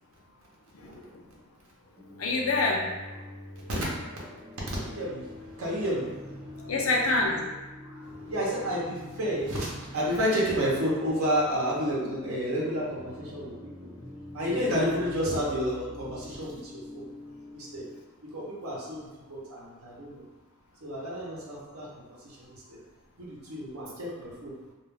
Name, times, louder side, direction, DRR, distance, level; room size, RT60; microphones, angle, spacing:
voice 1, 0.7-1.2 2.2-3.2 6.6-7.4 8.0-8.1, left 2 dB, 70° left, -1 dB, 0.5 m, -27 dB
sound 1, 2.0-18.0, left 2 dB, 20° right, 0.7 m, -45 dB
voice 2, 4.7-6.7 8.0-13.9 14.3-17.0 17.5-17.8 18.3-19.0 19.3-20.2 20.8-22.4 22.7-22.8 23.2-24.5, equal, 70° right, -5 dB, 0.8 m, -31 dB
2.3 x 2.3 x 3.3 m, 1.2 s
head